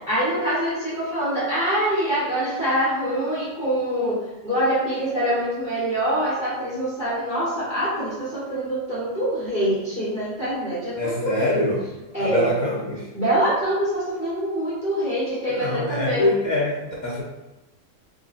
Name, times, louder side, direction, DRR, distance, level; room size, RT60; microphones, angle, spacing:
voice 1, 0.0-11.6 12.1-12.5 13.1-16.3, right 1 dB, 35° left, -11 dB, 1.2 m, -25 dB
voice 2, 11.0-11.8 12.2-13.1 15.5-17.2, left 1 dB, 60° left, -5 dB, 0.4 m, -24 dB
3.3 x 2.4 x 3.9 m, 1.0 s
omnidirectional pair, 1.7 m